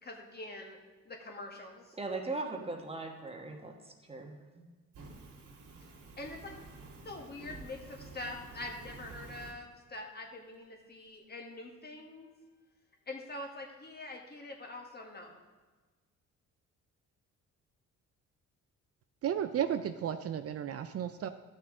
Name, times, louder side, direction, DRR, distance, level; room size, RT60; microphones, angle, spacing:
voice 1, 0.0-0.8 1.0-1.9 6.2-6.5 7.0-12.3 13.1-15.4, left 2 dB, 30° left, 2 dB, 1.7 m, -44 dB
voice 2, 1.9-4.7, right 3 dB, 20° right, 2 dB, 1.4 m, -39 dB
Fire, 4.9-9.5, right 3 dB, 85° right, 2.7 m, -50 dB
voice 3, 19.2-21.3, right 9 dB, 50° right, 9 dB, 0.5 m, -33 dB
13.0 x 6.3 x 3.8 m, 1.3 s
cardioid pair, 90°, 30 cm